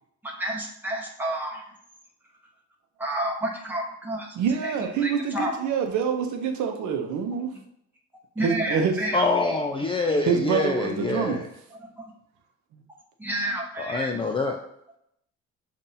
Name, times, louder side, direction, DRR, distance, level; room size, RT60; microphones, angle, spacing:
voice 1, 0.2-1.7 3.0-5.8 7.5-7.6 8.3-9.3 11.8-12.0 13.2-14.2, right 1 dB, 5° right, -2 dB, 1.0 m, -31 dB
voice 2, 4.4-7.5 8.4-9.0 10.3-11.4 12.7-12.8, right 6 dB, 70° right, 5 dB, 0.7 m, -26 dB
voice 3, 9.1-11.4 13.9-14.6, left 3 dB, 20° left, 2 dB, 0.3 m, -25 dB
7.1 x 2.6 x 2.7 m, 0.75 s
cardioid pair, 130°, 31 cm